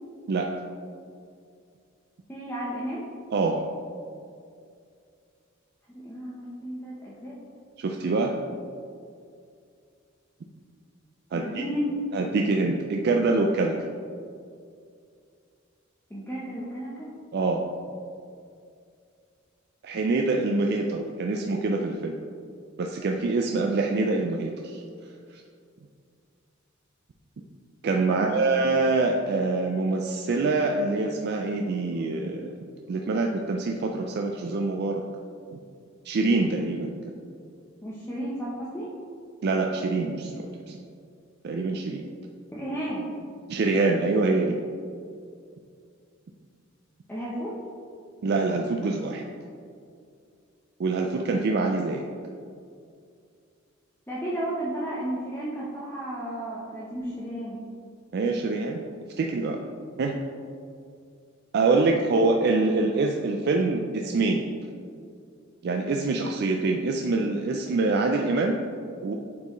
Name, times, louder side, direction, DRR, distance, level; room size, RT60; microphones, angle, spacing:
voice 1, 2.3-3.1 5.9-7.4 11.3-11.9 16.1-17.1 28.1-28.5 37.8-38.9 42.5-43.1 47.1-47.5 54.1-57.6 61.7-61.8, equal, 10° left, -7 dB, 0.8 m, -33 dB
voice 2, 3.3-3.6 7.8-8.3 11.3-11.6 12.1-13.8 17.3-17.6 19.8-22.2 22.8-24.8 25.3-25.4 27.8-32.5 32.9-35.0 35.5-35.6 36.0-36.9 39.4-40.8 41.4-42.0 43.5-44.6 48.2-49.2 50.8-52.0 58.1-58.8 59.2-59.6 60.0-60.1 61.5-64.4 65.6-68.6 69.0-69.1, right 3 dB, 55° right, 2 dB, 0.4 m, -25 dB
8.4 x 4.4 x 3.0 m, 2.3 s
head